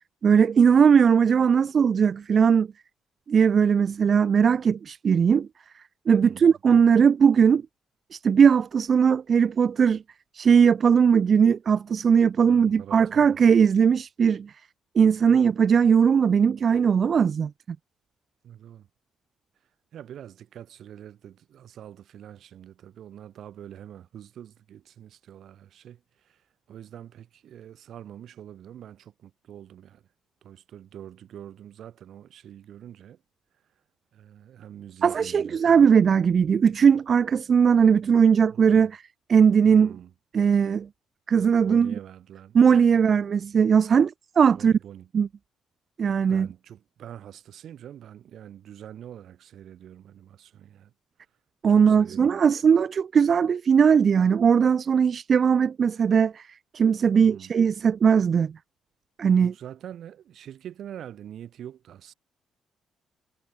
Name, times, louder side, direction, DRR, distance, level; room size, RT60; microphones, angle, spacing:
voice 1, 0.2-2.7 3.3-5.5 6.1-7.6 8.1-10.0 10.3-14.5 14.9-17.5 35.0-39.0 39.3-39.9 40.3-40.9 41.3-41.9 42.5-44.7 45.1-45.3 46.0-46.5 51.6-56.5 56.7-58.5 59.2-59.5, right 7 dB, 50° right, 0.7 m, -19 dB
voice 2, 6.2-6.6 12.5-13.4 18.4-18.9 19.9-30.1 30.4-33.2 34.1-35.9 38.5-38.9 39.7-40.1 41.6-42.6 42.9-43.1 44.4-45.1 46.3-50.9 51.7-52.3 57.2-57.5 59.4-62.1, right 10 dB, 70° right, 7.5 m, -45 dB
cardioid pair, 90°, 0 cm